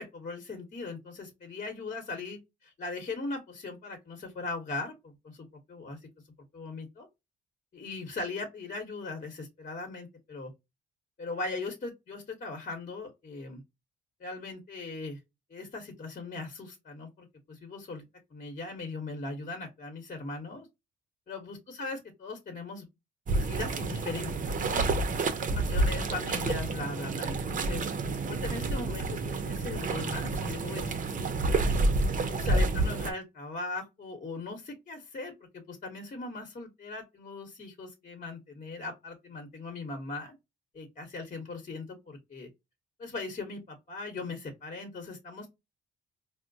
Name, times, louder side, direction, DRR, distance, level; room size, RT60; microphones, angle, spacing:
voice 1, 0.0-6.0 6.5-7.1 7.7-10.5 11.2-13.6 14.2-15.2 15.5-18.0 18.3-20.7 21.3-22.9 23.3-25.2 25.5-27.9 28.2-31.3 32.3-40.3 40.7-42.5 43.0-45.5, left 3 dB, 40° left, 1.2 m, -39 dB
sound 1, 23.3-33.1, right 3 dB, 40° right, 0.7 m, -29 dB
4.3 x 2.1 x 2.5 m
cardioid pair, 90°, 20 cm